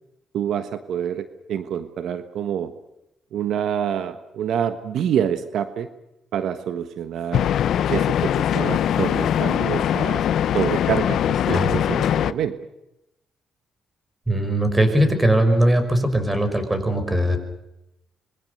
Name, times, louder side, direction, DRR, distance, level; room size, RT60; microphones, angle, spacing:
voice 1, 0.3-2.7 3.3-5.9 6.3-7.5 7.9-10.2 10.5-12.5, right 9 dB, 75° right, 10 dB, 1.4 m, -27 dB
sound 1, 7.3-12.3, left 10 dB, 70° left, 0.8 m, -21 dB
voice 2, 14.3-17.4, right 1 dB, 15° right, 8 dB, 5.8 m, -20 dB
26.5 x 23.0 x 6.8 m, 0.88 s
cardioid pair, 90°, 0 cm